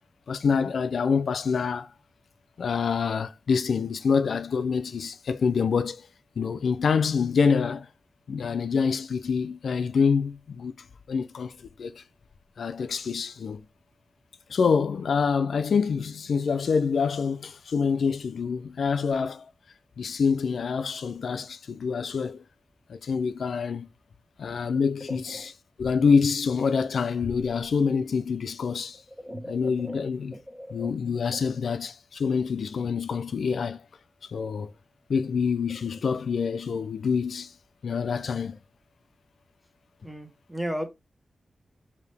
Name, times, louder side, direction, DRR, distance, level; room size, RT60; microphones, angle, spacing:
voice 1, 0.3-1.9 2.6-6.1 6.4-7.9 8.3-10.7 11.1-12.0 12.6-13.6 14.5-19.4 20.0-22.4 22.9-23.9 24.4-29.0 29.5-30.4 30.7-33.8 34.3-34.7 35.1-37.5 37.8-38.6, left 5 dB, 80° left, 0.3 m, -26 dB
voice 2, 12.6-12.9 24.7-24.8 25.1-25.5 28.9-30.0 30.3-30.9 31.3-31.7 35.9-36.0 37.8-38.0 40.0-40.9, equal, 5° right, 1.2 m, -38 dB
4.9 x 2.7 x 3.3 m
wide cardioid pair, 85°, 0 cm